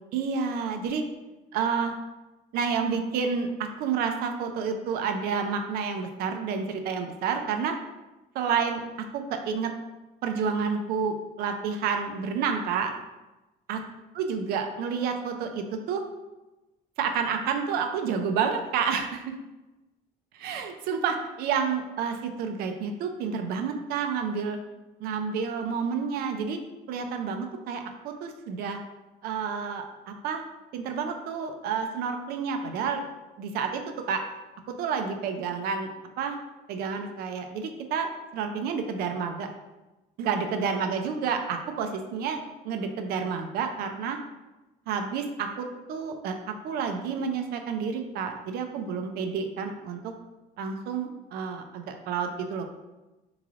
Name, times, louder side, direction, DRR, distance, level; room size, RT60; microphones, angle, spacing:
voice 1, 0.1-1.0 1.5-1.9 2.5-3.5 3.8-7.7 8.3-8.8 9.1-9.7 10.2-12.9 13.7-13.8 14.1-16.0 17.0-19.1 20.3-24.6 25.0-26.6 26.9-28.8 29.2-30.4 30.7-33.0 33.4-33.8 34.1-34.2 34.7-35.9 36.2-36.4 36.7-39.5 40.2-42.4 42.6-44.2 44.9-46.4 46.6-50.0 50.6-52.7, right 6 dB, 80° right, 5 dB, 0.4 m, -29 dB
3.7 x 3.1 x 2.4 m, 1.1 s
cardioid pair, 150°, 16 cm